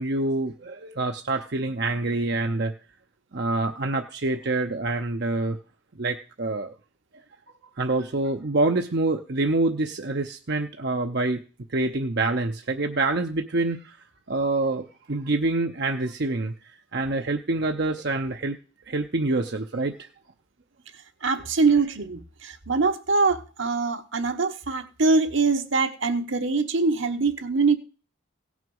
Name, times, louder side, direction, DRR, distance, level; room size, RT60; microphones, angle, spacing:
voice 1, 0.0-2.7 3.3-5.6 6.0-6.7 7.8-11.4 11.7-14.0 14.3-16.5 16.9-18.6 18.9-20.1, right 2 dB, 55° right, 0.8 m, -26 dB
voice 2, 21.2-27.8, right 4 dB, 75° right, 1.2 m, -23 dB
17.0 x 6.2 x 5.5 m
head